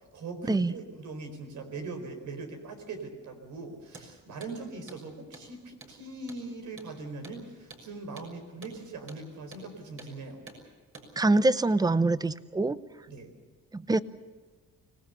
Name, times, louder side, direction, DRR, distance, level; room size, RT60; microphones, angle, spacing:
voice 1, 0.1-10.4 13.1-13.3, right 3 dB, 75° right, 5 dB, 4.6 m, -41 dB
Hammer, 3.9-4.1 4.4-4.5 4.9-5.0 5.3-5.5 5.8-6.0 6.3-6.4 6.8-6.9 7.2-7.4 7.7-7.9 8.2-8.3 8.6-8.8 9.1-9.2 9.5-9.7 10.0-10.1 10.5-10.6 10.9-11.1, right 3 dB, 45° right, 6.4 m, -48 dB
voice 2, 11.2-12.8 13.7-14.0, right 2 dB, 15° right, 15 dB, 0.8 m, -24 dB
25.5 x 18.5 x 7.0 m, 1.3 s
cardioid pair, 90°, 30 cm